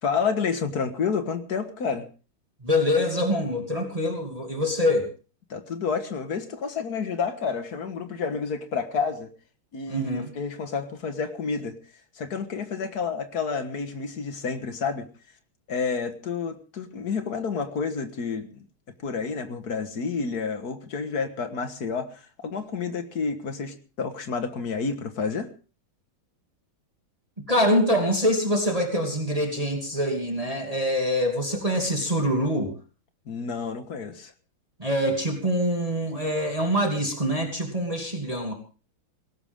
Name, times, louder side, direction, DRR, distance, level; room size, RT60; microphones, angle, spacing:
voice 1, 0.0-2.1 5.5-9.3 9.7-11.8 12.2-15.1 15.7-18.7 19.0-25.5 33.3-34.3, left 5 dB, 50° left, 9 dB, 1.9 m, -30 dB
voice 2, 2.6-5.1 9.9-10.3 27.5-32.7 34.8-38.5, equal, 15° right, 2 dB, 2.7 m, -25 dB
19.0 x 17.0 x 3.6 m, 0.36 s
omnidirectional pair, 2.3 m